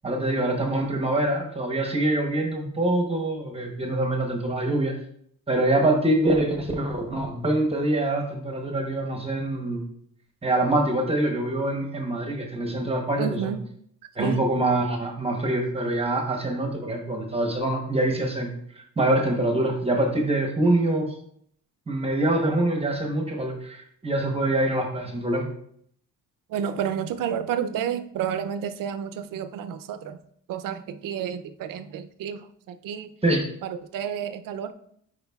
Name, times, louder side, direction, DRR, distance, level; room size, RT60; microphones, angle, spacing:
voice 1, 0.0-4.9 5.5-9.8 10.4-13.5 14.2-18.5 19.0-21.1 21.9-25.5 33.2-33.4, right 1 dB, 20° right, 3 dB, 0.9 m, -25 dB
voice 2, 13.2-13.6 14.2-14.4 26.5-30.2 30.5-33.1 33.6-34.7, right 8 dB, 75° right, 9 dB, 0.5 m, -30 dB
9.4 x 4.8 x 2.3 m, 0.66 s
cardioid pair, 155°, 33 cm